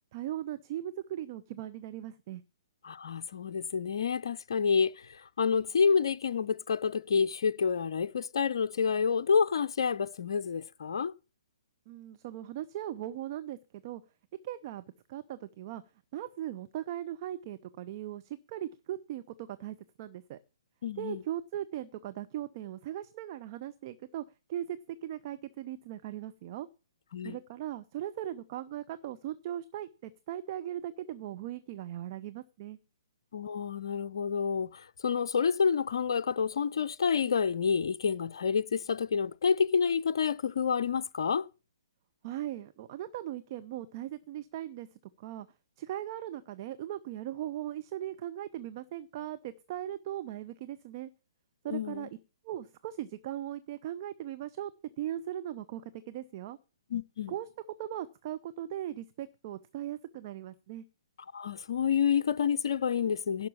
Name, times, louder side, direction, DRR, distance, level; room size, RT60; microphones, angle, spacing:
voice 1, 0.1-2.4 11.9-14.0 14.4-14.8 15.1-15.8 16.1-20.4 21.0-26.7 27.2-32.8 42.2-44.9 45.2-45.5 45.8-51.1 51.6-52.1 52.4-54.7 55.0-56.6 57.3-57.5 57.8-60.8, right 12 dB, 40° right, 0.7 m, -39 dB
voice 2, 2.8-11.1 20.8-21.2 27.1-27.4 33.3-41.5 51.7-52.1 56.9-57.3 61.3-63.5, left 6 dB, 55° left, 0.6 m, -29 dB
11.5 x 5.9 x 8.4 m
figure-of-eight pair, 120°, 3 cm